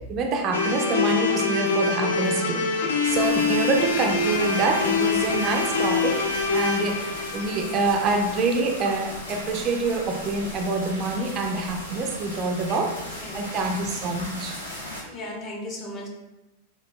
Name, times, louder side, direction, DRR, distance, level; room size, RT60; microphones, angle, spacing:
voice 1, 0.1-6.3 6.5-14.5, right 3 dB, 35° right, 2 dB, 0.4 m, -26 dB
sound 1, 0.5-8.6, left 4 dB, 65° left, 0.4 m, -25 dB
sound 2, 3.0-15.0, left 1 dB, 80° left, 0.9 m, -37 dB
voice 2, 13.2-13.6 15.0-16.1, left 1 dB, 30° left, -1 dB, 0.7 m, -36 dB
4.1 x 2.4 x 2.2 m, 1.0 s
figure-of-eight pair, 90°, 0 cm